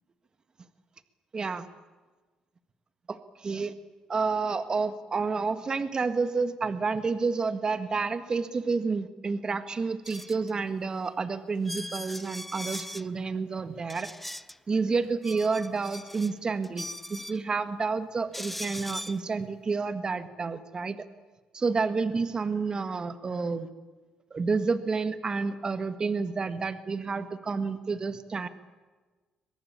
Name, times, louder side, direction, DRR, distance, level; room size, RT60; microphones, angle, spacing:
voice 1, 1.3-1.7 3.1-3.7 4.1-14.1 14.7-21.0 21.5-23.7 24.3-28.5, right 4 dB, 35° right, 10 dB, 1.7 m, -29 dB
sound 1, 10.0-10.5 11.1-11.2 11.6-13.1 13.9-14.6 15.0-16.3 16.6-17.4 18.3-19.2, left 1 dB, 5° left, 0.8 m, -40 dB
23.5 x 21.5 x 8.8 m, 1.3 s
cardioid pair, 90°, 2 cm